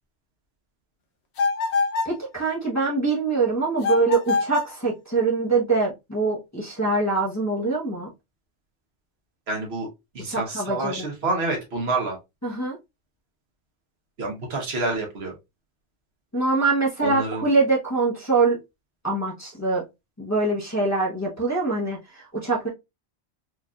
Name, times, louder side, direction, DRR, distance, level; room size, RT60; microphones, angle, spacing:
sound 1, 1.4-2.2 3.8-4.8, left 4 dB, 70° left, 1.0 m, -25 dB
voice 1, 2.0-8.1 10.3-11.0 12.4-12.8 16.3-18.6 19.0-19.8 20.2-22.7, right 3 dB, 15° left, -6 dB, 0.9 m, -24 dB
voice 2, 9.5-9.9 10.1-12.2 14.2-15.3 17.0-17.5, right 3 dB, 65° right, 1 dB, 1.3 m, -28 dB
4.6 x 2.6 x 2.3 m, 0.22 s
omnidirectional pair, 1.2 m